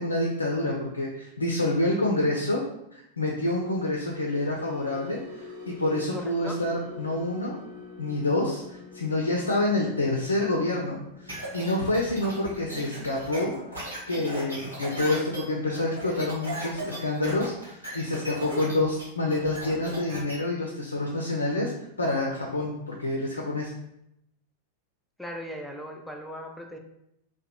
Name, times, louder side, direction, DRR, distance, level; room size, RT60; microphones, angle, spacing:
voice 1, 0.0-2.6 2.9-7.6 8.0-13.5 14.1-21.7 22.0-23.7, left 2 dB, 80° left, -1 dB, 0.3 m, -27 dB
sound 1, 4.0-20.3 20.6-20.9 21.3-21.5, left 4 dB, 50° right, 0.5 m, -48 dB
voice 2, 6.1-6.6 12.4-13.1 25.2-26.8, equal, ahead, 2 dB, 0.4 m, -39 dB
sound 2, 11.3-20.3, right 1 dB, 80° right, 1.1 m, -37 dB
2.7 x 2.1 x 2.3 m, 0.80 s
figure-of-eight pair, 90°, 0 cm